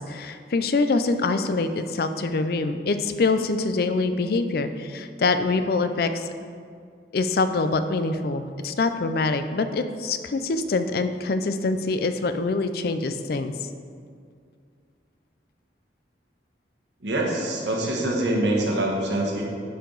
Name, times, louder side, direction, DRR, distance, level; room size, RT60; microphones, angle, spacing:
voice 1, 0.0-6.3 7.1-13.5, left 3 dB, 55° left, 9 dB, 0.4 m, -25 dB
voice 2, 17.0-19.4, right 1 dB, 75° right, -1 dB, 1.4 m, -24 dB
11.0 x 4.7 x 3.9 m, 2.2 s
head